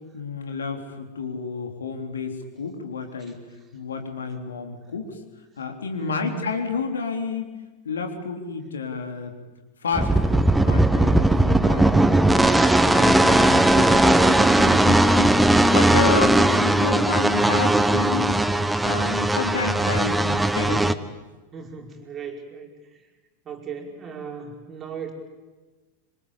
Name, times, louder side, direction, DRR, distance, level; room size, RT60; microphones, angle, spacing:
voice 1, 0.1-3.4 3.7-5.2 5.6-7.5 7.8-9.4 9.8-12.5 12.9-18.4 18.8-20.8, left 5 dB, 70° left, 5 dB, 3.7 m, -30 dB
voice 2, 6.0-6.5 21.5-23.0 23.4-25.1, right 5 dB, 25° right, 2 dB, 5.1 m, -36 dB
sound 1, 9.9-20.9, right 1 dB, 5° right, 1.2 m, -18 dB
27.0 x 25.5 x 8.8 m, 1.2 s
figure-of-eight pair, 90°, 0 cm